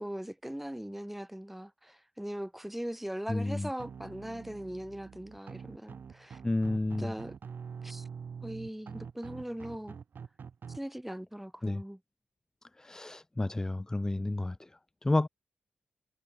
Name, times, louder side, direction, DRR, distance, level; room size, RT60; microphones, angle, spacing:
voice 1, 0.0-6.4 7.0-7.3 7.8-8.1 8.4-10.0 10.7-12.0, equal, 5° right, 1.7 m, -40 dB
voice 2, 3.3-3.7 6.4-7.1 11.6-11.8 12.8-14.7 15.0-15.3, left 2 dB, 15° left, 0.6 m, -30 dB
sound 1, 3.8-10.8, right 6 dB, 65° right, 3.4 m, -45 dB
cardioid pair, 85°, 4 cm